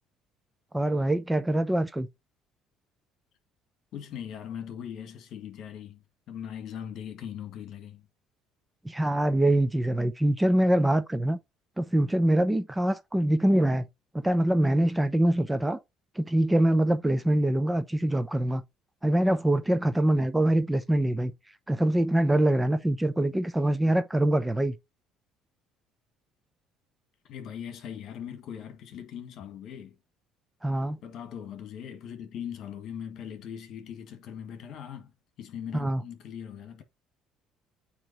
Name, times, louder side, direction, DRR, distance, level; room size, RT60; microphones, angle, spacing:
voice 1, 0.7-2.1 8.8-11.4 11.8-13.9 14.1-15.8 16.2-18.6 19.0-21.3 21.7-24.8 30.6-31.0 35.7-36.0, right 1 dB, 10° right, 0.7 m, -24 dB
voice 2, 3.9-8.1 27.2-30.0 31.0-35.1 35.4-36.8, left 9 dB, 60° left, 2.0 m, -40 dB
9.0 x 3.1 x 4.3 m
cardioid pair, 110°, 0 cm